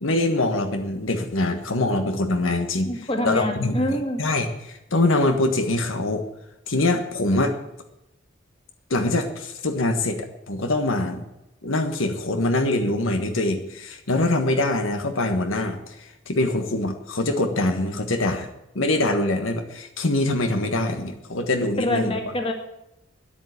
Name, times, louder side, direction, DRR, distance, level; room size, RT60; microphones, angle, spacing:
voice 1, 0.0-2.9 3.2-3.8 4.2-6.3 6.7-7.6 8.9-11.3 11.6-18.5 18.7-22.1, left 2 dB, 90° left, 6 dB, 1.5 m, -24 dB
voice 2, 2.9-4.2 21.8-22.5, left 1 dB, 30° left, 3 dB, 2.0 m, -25 dB
10.5 x 8.9 x 8.4 m, 0.88 s
head